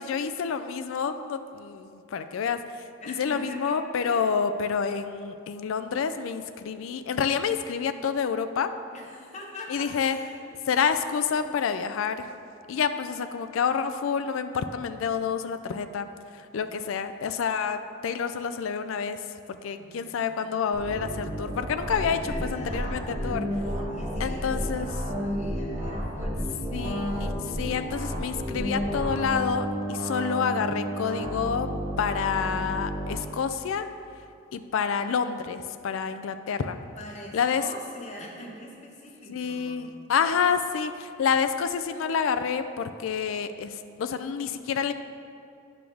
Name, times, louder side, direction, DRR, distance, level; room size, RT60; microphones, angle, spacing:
voice 1, 0.0-2.8 3.2-8.7 9.7-10.2 10.7-12.2 12.7-16.1 16.4-19.2 19.6-23.5 24.2-24.9 26.7-31.7 32.0-33.9 34.5-36.8 37.3-37.6 39.3-44.9, left 6 dB, 70° left, 10 dB, 0.4 m, -28 dB
voice 2, 3.0-4.4 8.9-10.7 16.6-16.8 19.7-20.5 22.0-23.4 23.9-26.8 37.0-39.8, left 1 dB, 35° left, -1 dB, 0.9 m, -44 dB
sound 1, 20.7-33.1, equal, 30° right, 1.4 m, -31 dB
8.2 x 6.1 x 3.4 m, 2.5 s
head